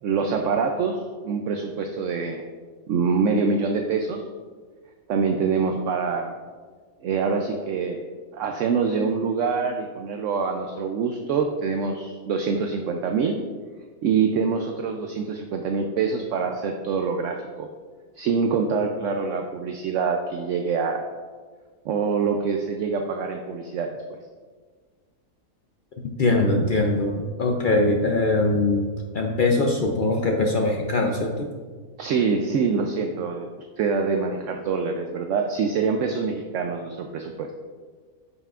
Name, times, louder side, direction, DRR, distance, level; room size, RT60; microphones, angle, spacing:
voice 1, 0.0-2.5 2.9-4.2 5.1-6.3 7.0-8.0 8.3-13.4 14.0-17.7 18.2-21.0 21.8-24.2 32.0-33.5 33.8-37.5, right 5 dB, 70° right, 4 dB, 0.8 m, -25 dB
voice 2, 26.2-31.5, left 2 dB, 70° left, 1 dB, 0.4 m, -22 dB
9.5 x 5.7 x 2.4 m, 1.5 s
omnidirectional pair, 1.5 m